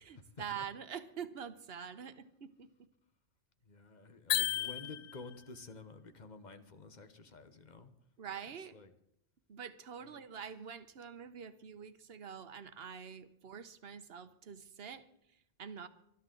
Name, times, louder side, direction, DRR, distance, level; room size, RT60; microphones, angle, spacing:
voice 1, 0.0-2.9 8.2-8.8 9.5-15.9, right 7 dB, 60° right, 12 dB, 1.1 m, -46 dB
voice 2, 3.6-7.9 8.7-8.9 10.0-10.1, left 3 dB, 40° left, 9 dB, 1.1 m, -51 dB
sound 1, 4.3-5.4, left 12 dB, 75° left, 1.0 m, -34 dB
24.5 x 11.0 x 3.9 m, 0.79 s
omnidirectional pair, 1.2 m